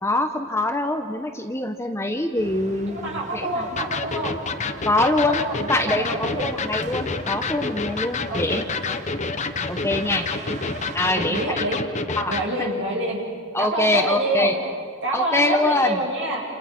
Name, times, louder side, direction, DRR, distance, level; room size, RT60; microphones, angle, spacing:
voice 1, 0.0-3.7 4.8-5.4 5.7-8.7 9.7-10.3 10.9-11.6 12.2-12.3 13.5-14.5 15.1-16.0, left 2 dB, 15° left, 5 dB, 1.2 m, -24 dB
sound 1, 2.4-11.0, right 2 dB, 35° right, 1.8 m, -40 dB
voice 2, 2.9-4.4 5.1-6.5 8.3-9.0 11.1-11.8 12.3-13.2 13.6-14.5 15.0-16.4, right 2 dB, 60° right, -2 dB, 7.5 m, -27 dB
Electric guitar, 3.8-12.5, left 4 dB, 35° left, 1.1 m, -29 dB
29.0 x 29.0 x 6.2 m, 2.1 s
head